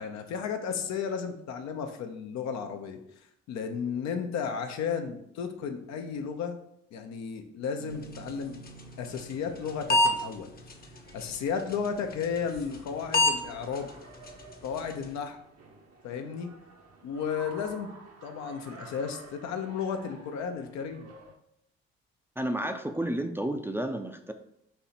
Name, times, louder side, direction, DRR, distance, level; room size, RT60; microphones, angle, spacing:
voice 1, 0.0-3.0 3.5-6.6 6.9-8.5 9.0-10.5 11.1-13.9 14.6-15.4 16.0-16.5 17.0-17.9 18.2-21.1, left 6 dB, 70° left, 5 dB, 0.7 m, -33 dB
Guitar, 7.8-13.0, right 5 dB, 85° right, 0.8 m, -52 dB
sound 1, 7.9-15.2, left 1 dB, 30° left, 0.8 m, -32 dB
sound 2, 8.6-21.3, right 3 dB, 60° right, 0.9 m, -52 dB
voice 2, 22.4-24.3, right 1 dB, 10° right, 6 dB, 0.5 m, -31 dB
4.4 x 2.8 x 4.2 m, 0.77 s
hypercardioid pair, 50°, 29 cm